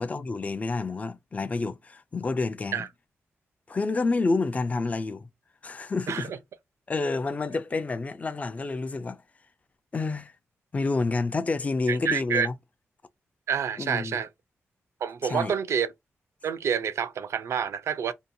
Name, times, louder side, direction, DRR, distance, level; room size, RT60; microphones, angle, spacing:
voice 1, 0.0-2.9 3.7-5.3 5.6-6.3 6.9-9.2 9.9-10.3 10.7-12.5 13.8-14.2 15.2-15.5, left 3 dB, 30° left, 0.4 m, -29 dB
voice 2, 11.9-12.5 13.5-14.3 15.0-15.9 16.4-18.1, right 7 dB, 70° right, 0.4 m, -28 dB
2.7 x 2.2 x 2.6 m
wide cardioid pair, 110°, 5 cm